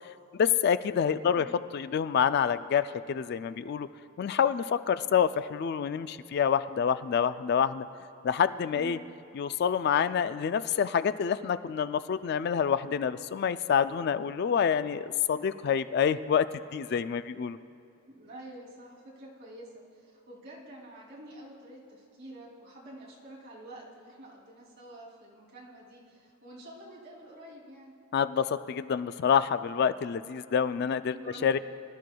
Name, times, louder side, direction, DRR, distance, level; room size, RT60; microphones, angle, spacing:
voice 1, 0.3-1.5 1.7-3.9 4.2-7.9 8.2-9.0 9.3-16.5 16.7-17.6 28.1-31.1 31.4-31.6, left 7 dB, 50° left, 13 dB, 0.3 m, -27 dB
voice 2, 8.7-9.1 18.1-27.9 31.1-31.6, right 1 dB, 55° right, -4 dB, 2.7 m, -48 dB
23.0 x 12.0 x 2.3 m, 2.6 s
head